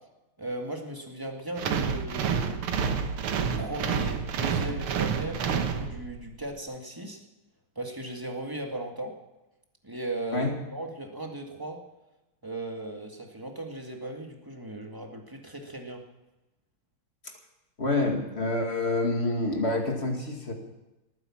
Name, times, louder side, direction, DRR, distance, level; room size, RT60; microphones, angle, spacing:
voice 1, 0.4-2.6 3.3-7.2 7.8-9.1 9.8-11.8 12.4-16.0, right 1 dB, 10° right, 2 dB, 1.8 m, -37 dB
sound 1, 1.6-6.3, right 6 dB, 90° right, 2.1 m, -29 dB
voice 2, 17.8-20.5, left 2 dB, 30° left, 2 dB, 2.4 m, -27 dB
19.0 x 9.7 x 7.3 m, 1.0 s
omnidirectional pair, 2.3 m